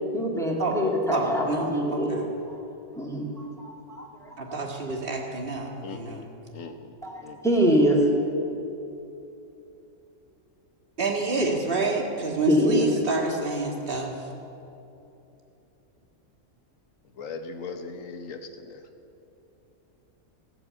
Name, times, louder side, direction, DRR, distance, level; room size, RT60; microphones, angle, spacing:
voice 1, 0.1-2.2 2.5-2.6 2.9-4.6 7.0-8.3 12.5-12.9, equal, ahead, -2 dB, 2.0 m, -25 dB
voice 2, 1.1-2.2 4.4-6.2 11.0-14.1, right 3 dB, 45° right, 0 dB, 2.0 m, -28 dB
voice 3, 5.8-7.4 17.2-18.9, left 4 dB, 80° left, 6 dB, 1.4 m, -39 dB
17.0 x 7.0 x 8.5 m, 2.9 s
omnidirectional pair, 1.3 m